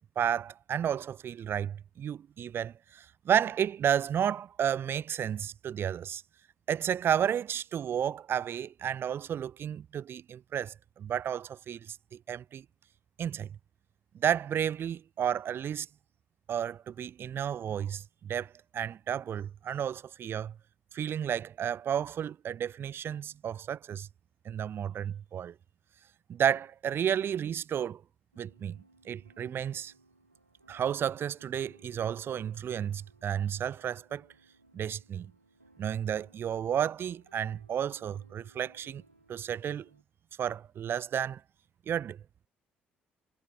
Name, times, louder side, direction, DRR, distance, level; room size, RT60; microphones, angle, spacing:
voice 1, 0.2-6.2 6.7-12.6 13.2-13.5 14.1-15.9 16.5-20.6 20.9-24.1 24.4-25.5 26.3-28.0 28.4-28.8 29.1-29.9 30.7-34.3 34.7-35.3 35.8-39.0 39.3-39.9 40.4-41.4 41.9-42.2, right 9 dB, 45° right, 0.6 m, -32 dB
sound 1, 28.3-40.0, right 2 dB, 90° right, 1.7 m, -63 dB
figure-of-eight pair, 45°, 6 cm